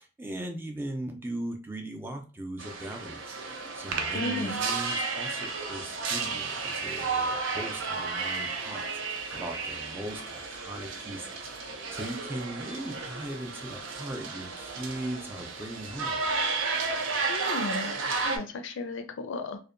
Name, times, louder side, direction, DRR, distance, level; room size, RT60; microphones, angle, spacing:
voice 1, 0.0-3.3 3.7-16.2, right 1 dB, 10° right, 3 dB, 0.4 m, -39 dB
sound 1, 2.6-18.4, right 4 dB, 85° right, 0.5 m, -33 dB
voice 2, 4.1-4.6 17.3-17.9 18.2-19.6, left 2 dB, 85° left, 7 dB, 0.4 m, -34 dB
2.6 x 2.1 x 2.5 m, 0.36 s
head